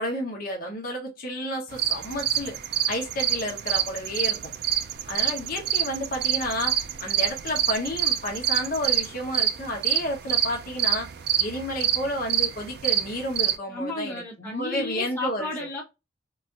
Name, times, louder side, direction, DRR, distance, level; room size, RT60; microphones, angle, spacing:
voice 1, 0.0-2.6 2.9-4.5 5.1-11.1 11.4-15.5, equal, 45° left, 0.8 m, -31 dB
sound 1, 1.7-13.6, right 10 dB, 50° right, 0.3 m, -26 dB
voice 2, 13.7-15.8, left 2 dB, 10° left, 0.9 m, -33 dB
4.0 x 2.4 x 2.3 m
head